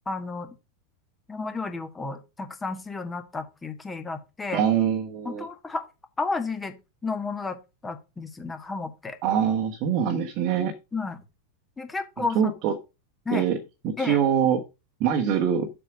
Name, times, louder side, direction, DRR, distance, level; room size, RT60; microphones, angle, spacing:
voice 1, 0.1-0.6 1.3-4.6 5.3-5.9 6.2-6.7 7.0-7.6 7.8-9.2 10.9-11.2 11.8-12.5 13.3-13.5 14.0-14.2, left 3 dB, 10° left, 1.6 m, -32 dB
voice 2, 4.5-5.4 9.2-10.7 12.2-12.7 13.3-13.6 13.8-14.6 15.0-15.7, right 8 dB, 40° right, 1.4 m, -24 dB
7.8 x 4.3 x 6.2 m
figure-of-eight pair, 90°, 0 cm